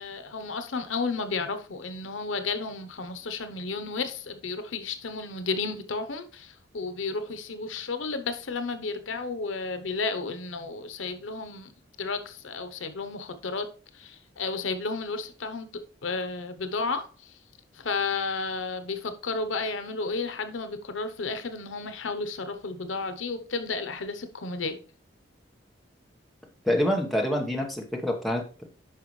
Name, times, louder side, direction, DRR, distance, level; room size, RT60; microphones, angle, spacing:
voice 1, 0.0-11.7 12.0-13.7 13.9-17.3 17.7-24.8, left 4 dB, 90° left, 0.9 m, -32 dB
voice 2, 26.6-28.6, equal, ahead, 1.2 m, -26 dB
9.4 x 5.7 x 3.1 m
head